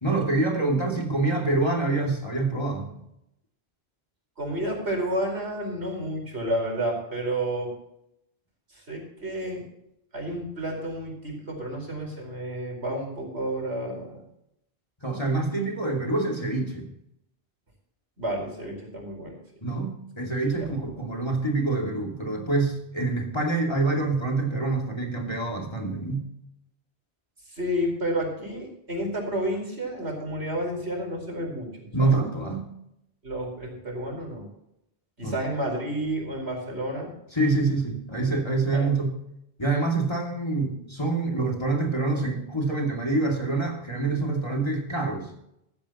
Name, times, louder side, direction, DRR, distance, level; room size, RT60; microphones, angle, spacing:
voice 1, 0.0-2.9 15.0-16.9 19.6-26.2 31.9-32.7 35.2-35.3 37.3-39.1 39.6-45.3, right 3 dB, 25° left, 0 dB, 2.6 m, -26 dB
voice 2, 4.4-7.7 8.7-9.6 10.1-14.2 18.2-19.4 20.6-20.9 27.4-32.2 33.2-34.5 35.2-37.1 38.7-38.9, right 1 dB, 75° right, 0 dB, 4.9 m, -31 dB
15.5 x 14.5 x 3.0 m, 0.80 s
omnidirectional pair, 1.1 m